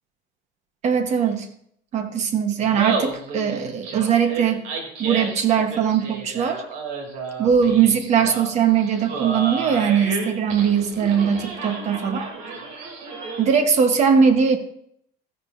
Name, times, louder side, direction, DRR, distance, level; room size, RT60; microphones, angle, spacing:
voice 1, 0.8-1.5 1.9-4.6 5.0-6.6 7.4-12.3 13.4-14.6, right 7 dB, 35° right, 8 dB, 1.0 m, -20 dB
Laughter, 2.6-13.6, right 4 dB, 70° right, 2.7 m, -32 dB
13.5 x 10.5 x 2.6 m, 0.69 s
cardioid pair, 170°, 20 cm